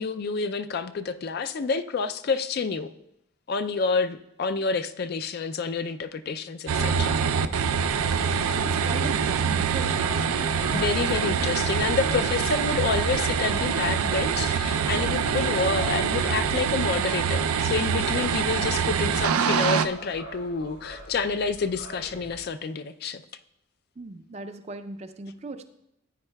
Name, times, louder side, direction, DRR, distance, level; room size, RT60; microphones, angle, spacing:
voice 1, 0.0-2.9 3.5-7.2 10.7-23.2, left 4 dB, 45° left, 10 dB, 0.3 m, -28 dB
sound 1, 6.7-19.9, right 6 dB, 90° right, 0.4 m, -25 dB
sound 2, 7.0-16.6, left 1 dB, 10° left, 0.7 m, -45 dB
voice 2, 8.5-10.0 11.2-11.4 24.0-25.7, right 3 dB, 30° right, 9 dB, 0.4 m, -37 dB
sound 3, 9.8-22.5, equal, 75° left, 4.1 m, -44 dB
14.0 x 9.4 x 2.2 m, 0.82 s
head